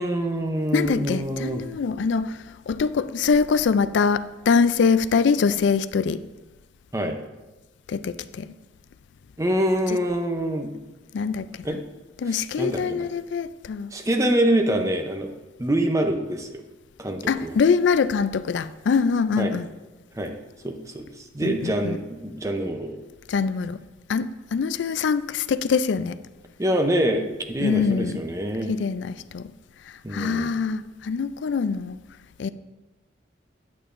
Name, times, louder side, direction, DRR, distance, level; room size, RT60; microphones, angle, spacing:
voice 1, 0.0-1.6 6.9-7.2 9.4-10.7 11.6-11.8 12.3-13.1 13.9-15.3 15.6-16.6 17.0-17.5 19.4-19.5 20.1-20.3 20.6-23.0 26.6-28.7 30.0-30.6, right 1 dB, 15° right, 0.6 m, -25 dB
voice 2, 0.7-6.2 7.9-8.5 11.1-11.8 12.2-13.9 17.3-19.7 21.4-22.0 23.3-23.8 24.1-26.2 27.6-28.2 28.7-29.5 29.9-32.0 32.4-32.5, left 5 dB, 70° left, 0.3 m, -24 dB
9.0 x 8.3 x 2.5 m
head